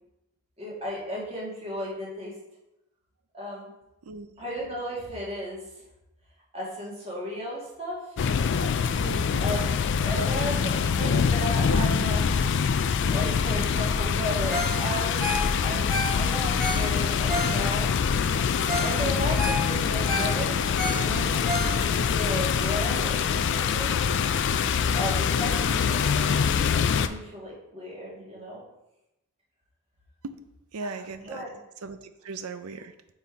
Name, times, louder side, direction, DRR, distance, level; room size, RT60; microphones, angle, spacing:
voice 1, 0.6-2.3 3.3-3.7 4.4-5.6 6.5-8.0 9.4-9.7 10.0-11.1 11.4-12.2 13.1-17.9 18.8-24.0 24.9-28.6 31.2-31.5, equal, 30° right, -5 dB, 1.9 m, -35 dB
sound 1, 8.2-27.1, left 6 dB, 55° left, 0.3 m, -25 dB
voice 2, 9.0-9.7 10.1-10.3 10.7-11.8 30.2-30.3 30.7-31.4 31.8-32.9, right 3 dB, 80° right, 10 dB, 0.5 m, -38 dB
Ringtone, 14.5-14.8 15.0-17.9 18.4-18.5 18.7-19.0 19.2-22.1 22.5-22.6, left 1 dB, 5° left, 1.5 m, -31 dB
5.5 x 4.2 x 4.7 m, 0.90 s
head